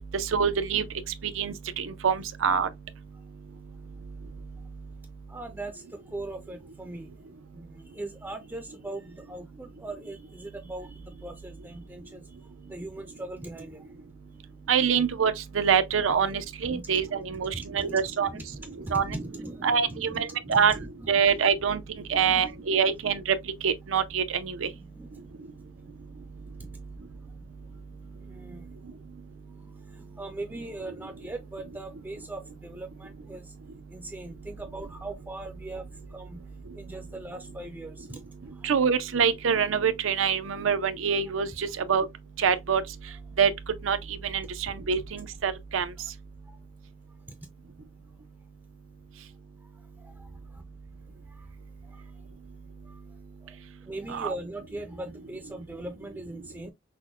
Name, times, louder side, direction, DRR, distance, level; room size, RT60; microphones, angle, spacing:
voice 1, 0.1-0.8 1.4-2.7 14.7-18.3 18.9-19.2 19.6-20.8 21.1-21.8 22.1-23.2 23.6-24.7 38.6-42.0 42.4-42.8 43.4-43.5 43.8-44.0 44.2-45.9 54.1-54.3, right 7 dB, 85° right, 0.6 m, -25 dB
voice 2, 5.3-7.1 7.5-12.3 12.7-13.9 16.6-16.8 17.4-21.2 22.0-22.9 24.6-26.8 27.2-27.3 28.1-28.7 29.6-33.5 33.9-35.9 36.1-36.4 36.7-38.2 38.5-38.7 46.0-46.1 50.0-50.2 50.5-50.6 51.3-51.5 51.8-52.0 52.8-53.0 53.4-53.6 53.9-56.7, right 2 dB, 10° right, 0.4 m, -41 dB
5.9 x 2.1 x 2.3 m
head